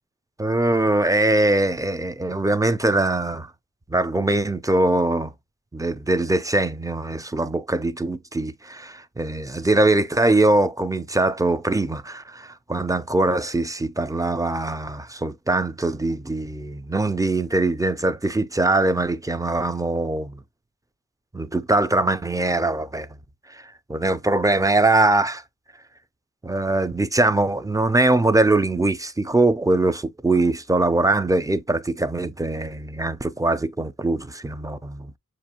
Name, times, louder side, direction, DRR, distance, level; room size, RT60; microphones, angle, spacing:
voice 1, 0.4-3.5 3.9-5.3 5.7-20.3 21.3-23.1 23.5-23.6 23.9-25.4 26.4-35.1, right 2 dB, 10° right, 0.4 m, -22 dB
6.8 x 2.6 x 2.8 m
wide cardioid pair, 75°, 32 cm